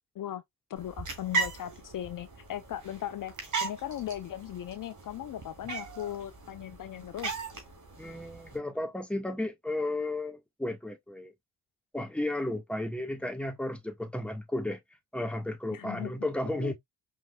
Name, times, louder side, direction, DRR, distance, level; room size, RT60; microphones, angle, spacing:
voice 1, 0.7-3.3 3.6-7.4 15.7-16.1 16.4-16.7, left 11 dB, 50° left, 0.6 m, -38 dB
sound 1, 0.8-8.6, right 4 dB, 45° right, 2.6 m, -38 dB
voice 2, 8.0-11.3 11.9-14.8 15.1-16.7, left 1 dB, 5° left, 1.4 m, -33 dB
5.2 x 3.6 x 2.2 m
supercardioid pair, 55°, 41 cm